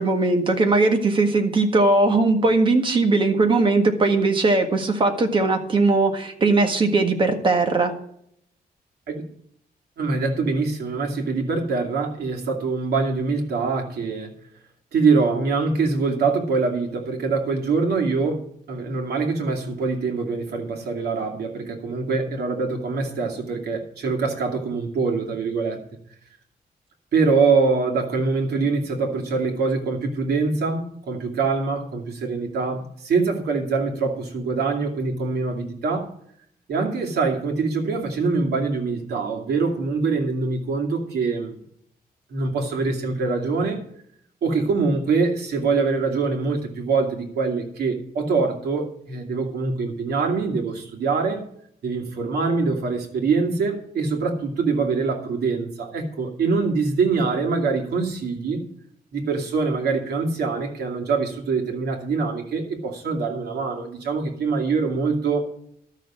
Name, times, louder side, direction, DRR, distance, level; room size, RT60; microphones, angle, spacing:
voice 1, 0.0-8.0, right 3 dB, 30° right, 5 dB, 1.6 m, -19 dB
voice 2, 10.0-14.3 14.9-18.4 18.7-25.8 27.1-36.1 36.7-41.6 42.3-43.8 44.4-51.4 51.8-58.6 59.1-65.4, right 4 dB, 80° right, 1 dB, 2.6 m, -24 dB
12.5 x 6.6 x 7.4 m, 0.69 s
wide cardioid pair, 165°, 16 cm